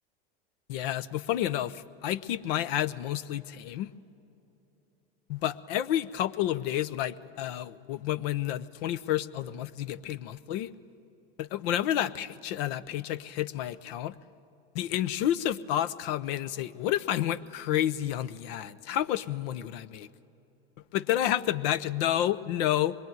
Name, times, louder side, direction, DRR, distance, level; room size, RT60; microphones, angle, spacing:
voice 1, 0.7-3.9 5.3-10.7 11.4-14.2 14.7-20.1 20.9-23.0, left 12 dB, 65° left, 15 dB, 0.9 m, -30 dB
24.5 x 22.0 x 9.4 m, 2.9 s
supercardioid pair, 115°, 31 cm